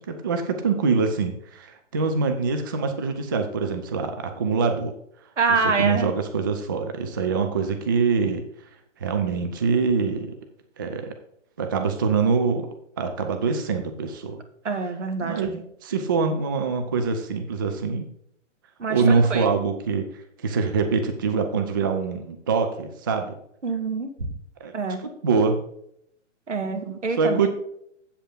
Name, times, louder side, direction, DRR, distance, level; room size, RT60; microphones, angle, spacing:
voice 1, 0.0-4.9 5.8-8.5 9.0-10.3 10.8-11.2 11.6-14.4 15.2-18.1 18.9-23.3 24.6-24.7 25.0-25.6 26.9-27.5, right 5 dB, 20° right, 6 dB, 0.4 m, -24 dB
voice 2, 5.4-6.1 14.7-15.6 18.8-19.5 23.6-24.1 24.7-25.0 26.5-27.5, right 4 dB, 70° right, 5 dB, 1.6 m, -26 dB
8.0 x 7.9 x 3.8 m, 0.73 s
figure-of-eight pair, 120°, 37 cm